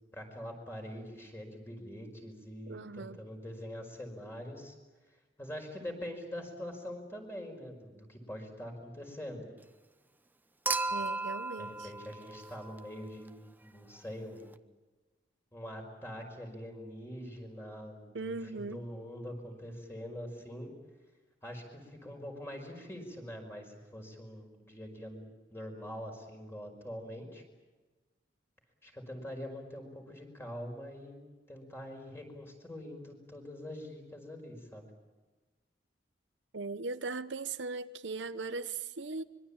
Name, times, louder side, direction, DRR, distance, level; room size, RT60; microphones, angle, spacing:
voice 1, 0.1-4.7 5.4-9.5 10.9-11.1 11.6-14.5 15.5-20.7 21.4-27.4 28.8-31.2 31.5-34.9, equal, 15° left, 2 dB, 5.1 m, -44 dB
voice 2, 2.7-3.2 10.9-11.9 18.1-18.8 36.5-39.2, right 3 dB, 85° right, 12 dB, 0.9 m, -39 dB
Human group actions / Chink clink / Liquid, 10.7-13.0 14.5-14.6, right 3 dB, 10° right, 0.8 m, -35 dB
25.5 x 22.5 x 8.8 m, 1.2 s
head